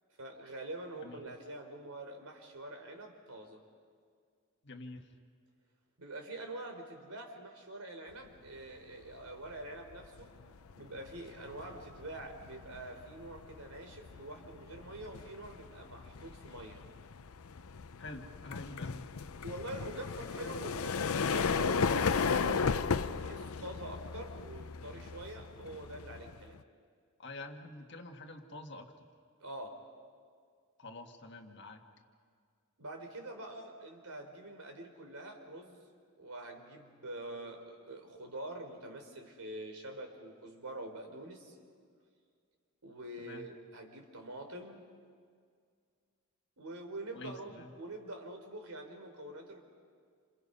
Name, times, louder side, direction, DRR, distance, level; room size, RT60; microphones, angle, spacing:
voice 1, 0.2-3.6 6.0-10.3 10.7-16.8 19.4-26.6 29.4-29.8 32.8-35.8 36.2-41.6 42.8-44.8 46.6-49.6, right 1 dB, 90° right, 4 dB, 3.6 m, -45 dB
voice 2, 1.0-1.3 4.6-5.1 18.0-19.1 27.2-28.9 30.8-31.8 43.2-43.5 47.1-47.7, left 2 dB, 50° left, 3 dB, 1.8 m, -47 dB
sound 1, 9.2-9.5 9.9-26.6, left 5 dB, 80° left, 0.6 m, -36 dB
28.0 x 27.5 x 5.5 m, 2.1 s
head